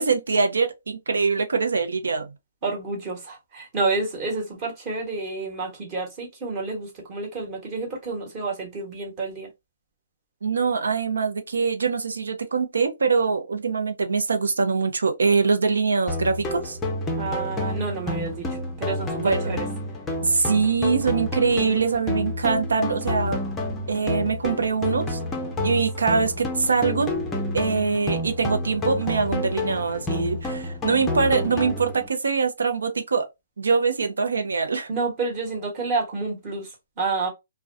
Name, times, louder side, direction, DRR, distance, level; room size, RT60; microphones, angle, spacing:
voice 1, 0.0-2.3 10.4-16.8 19.2-19.6 20.2-23.4 23.9-25.2 25.6-27.1 27.5-33.3 33.6-34.9, right 5 dB, 85° right, 0.7 m, -23 dB
voice 2, 2.6-9.5 17.2-19.6 34.9-37.3, right 3 dB, 25° right, 1.1 m, -29 dB
sound 1, 16.1-32.1, left 1 dB, 10° left, 0.5 m, -29 dB
2.3 x 2.2 x 2.5 m
hypercardioid pair, 155°, 0 cm